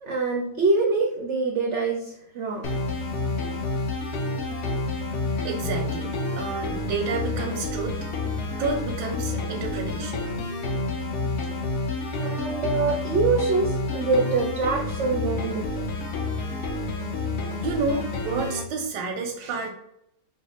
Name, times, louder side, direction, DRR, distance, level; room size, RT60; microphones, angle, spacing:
voice 1, 0.0-2.7 5.3-5.5 12.2-15.6, right 3 dB, 70° right, 1 dB, 0.7 m, -25 dB
sound 1, 2.6-18.6, left 2 dB, 65° left, 0.6 m, -29 dB
voice 2, 5.4-7.9 8.6-10.3 17.6-19.7, right 4 dB, 85° right, 2 dB, 1.3 m, -30 dB
4.7 x 2.0 x 4.1 m, 0.78 s
omnidirectional pair, 1.9 m